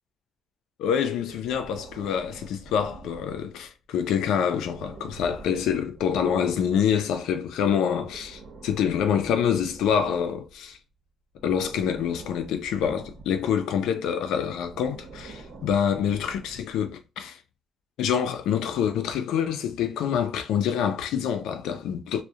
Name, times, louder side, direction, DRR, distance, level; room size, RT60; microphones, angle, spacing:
voice 1, 0.8-10.8 11.4-17.4 18.0-22.2, left 8 dB, 90° left, 0.4 m, -26 dB
Breathing, 1.3-3.7 4.5-6.8 7.9-10.8 11.4-13.6 14.5-16.8, right 3 dB, 65° right, 0.9 m, -46 dB
2.4 x 2.0 x 2.7 m
cardioid pair, 90°, 0 cm